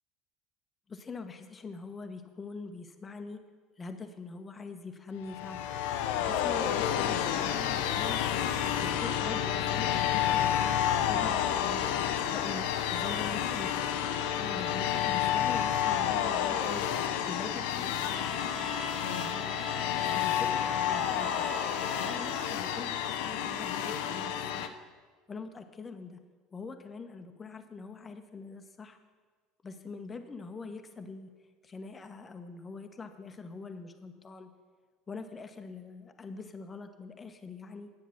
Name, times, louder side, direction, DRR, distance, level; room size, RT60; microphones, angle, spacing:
voice 1, 0.9-3.4 3.8-5.7 6.2-8.2 8.8-11.9 12.3-13.7 14.4-16.9 17.3-18.7 19.2-19.7 20.0-21.5 22.0-24.7 25.3-26.2 26.5-29.0 29.6-31.3 31.6-34.5 35.1-37.9, left 4 dB, 25° left, 7 dB, 1.0 m, -43 dB
sound 1, 5.2-24.7, left 10 dB, 65° left, 0.6 m, -30 dB
Bowed string instrument, 18.1-22.7, right 2 dB, 15° right, 0.7 m, -43 dB
10.5 x 8.5 x 6.0 m, 1.4 s
figure-of-eight pair, 70°, 0 cm